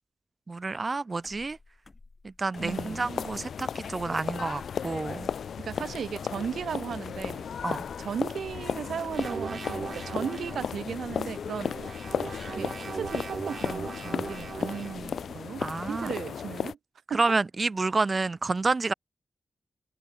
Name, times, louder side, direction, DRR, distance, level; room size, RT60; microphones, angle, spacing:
voice 1, 0.5-1.6 2.2-5.3 7.6-7.8 15.6-16.1 17.1-18.9, right 3 dB, 30° right, 0.4 m, -29 dB
sound 1, 1.2-15.4, left 3 dB, 30° left, 3.7 m, -54 dB
sound 2, 2.5-16.7, left 7 dB, 85° left, 2.5 m, -35 dB
voice 2, 2.6-3.1 5.6-7.4 8.0-16.8 17.1-17.2, right 7 dB, 85° right, 0.7 m, -36 dB
sound 3, 9.1-10.7 11.5-15.1, right 5 dB, 45° right, 0.9 m, -39 dB
wide cardioid pair, 140°, 0 cm